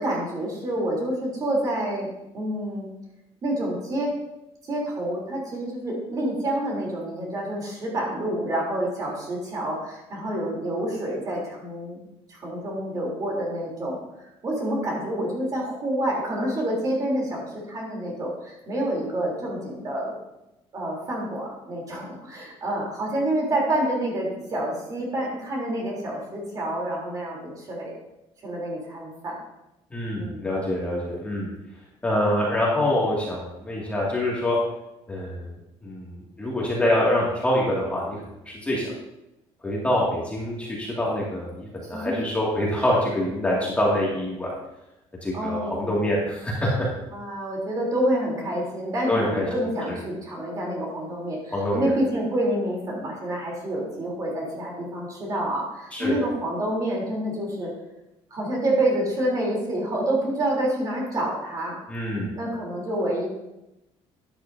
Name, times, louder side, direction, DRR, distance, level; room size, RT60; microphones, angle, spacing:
voice 1, 0.0-2.1 2.3-2.9 3.4-4.1 4.7-12.0 12.3-14.0 14.4-20.1 20.7-27.9 28.4-29.4 30.2-30.5 41.9-42.1 45.3-46.0 47.1-57.7 58.3-61.7 62.4-63.3, right 1 dB, 35° right, -3 dB, 3.4 m, -28 dB
voice 2, 29.9-31.5 32.0-34.6 35.1-35.5 35.8-38.2 38.5-38.9 39.6-44.5 45.2-46.9 49.1-49.5 49.9-50.0 51.5-51.9 55.9-56.2 61.9-62.3, left 1 dB, 10° left, -5 dB, 2.2 m, -25 dB
12.0 x 10.0 x 2.7 m, 0.91 s
cardioid pair, 155°, 11 cm